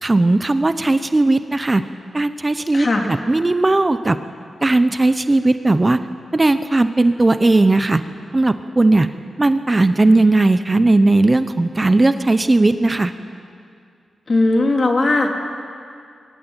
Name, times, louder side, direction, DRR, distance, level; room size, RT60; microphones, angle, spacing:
voice 1, 0.0-1.8 2.1-2.9 3.3-4.2 4.6-6.0 6.3-8.0 8.3-9.1 9.4-13.1, right 2 dB, 25° right, 11 dB, 0.9 m, -16 dB
voice 2, 2.7-3.0 14.3-15.3, left 2 dB, 45° left, 2 dB, 3.3 m, -17 dB
23.0 x 17.0 x 9.1 m, 2.3 s
cardioid pair, 65°, 0 cm